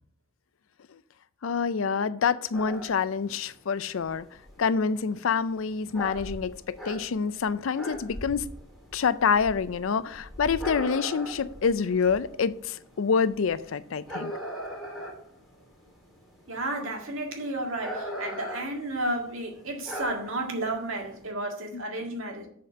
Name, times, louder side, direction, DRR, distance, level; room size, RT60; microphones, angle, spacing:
voice 1, 1.4-4.3 4.6-8.5 8.9-14.3 21.7-21.8, left 5 dB, 80° left, 0.5 m, -27 dB
sound 1, 2.5-21.3, equal, ahead, 2.4 m, -40 dB
voice 2, 16.5-22.5, right 2 dB, 80° right, 1.8 m, -32 dB
7.4 x 4.3 x 6.6 m
head